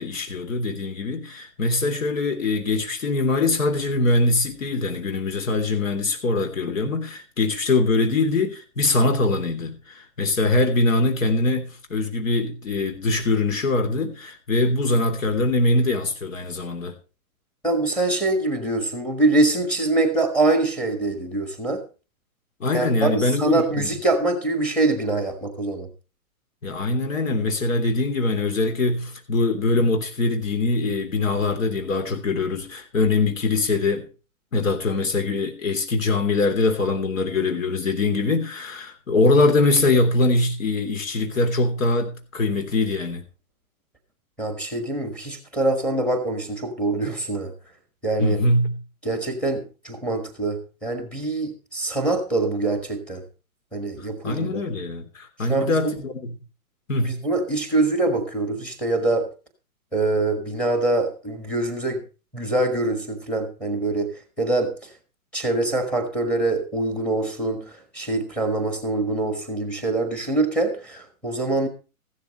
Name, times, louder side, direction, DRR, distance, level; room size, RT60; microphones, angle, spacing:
voice 1, 0.0-16.9 22.6-23.9 26.6-34.0 34.5-43.2 48.2-48.8 54.0-56.4 56.9-57.2, left 2 dB, 60° left, 3.3 m, -23 dB
voice 2, 17.6-21.8 22.7-25.9 44.4-47.5 48.0-48.4 49.0-53.2 53.7-54.6 55.4-55.9 57.0-59.3 59.9-62.0 62.3-64.1 64.4-64.7 65.3-71.7, right 2 dB, 5° left, 1.3 m, -24 dB
15.5 x 13.0 x 3.1 m
hypercardioid pair, 175°, 44 cm